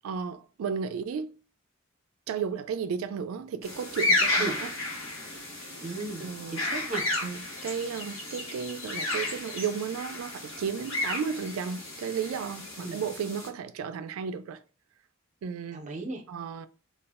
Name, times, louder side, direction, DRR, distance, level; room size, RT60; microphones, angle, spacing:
voice 1, 0.0-1.3 2.3-4.7 6.2-6.6 7.2-14.6 15.4-15.8 16.3-16.7, right 6 dB, 85° right, 0.3 m, -34 dB
sound 1, 3.6-13.5, left 2 dB, 75° left, 1.1 m, -32 dB
voice 2, 5.8-7.0 12.8-13.0 15.7-16.2, right 3 dB, 35° right, 0.5 m, -35 dB
2.3 x 2.0 x 3.4 m
head